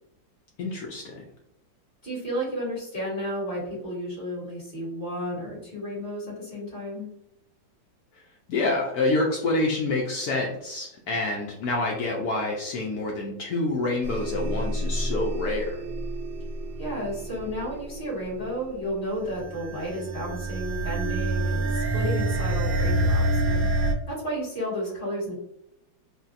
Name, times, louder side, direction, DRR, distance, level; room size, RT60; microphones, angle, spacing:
voice 1, 0.6-1.2 8.5-15.8, left 2 dB, 75° left, -1 dB, 0.9 m, -27 dB
voice 2, 2.0-7.1 16.8-25.3, equal, 30° left, -6 dB, 1.6 m, -32 dB
sound 1, 14.0-23.9, right 1 dB, 70° right, 0.9 m, -28 dB
4.0 x 2.1 x 2.5 m, 0.81 s
omnidirectional pair, 2.1 m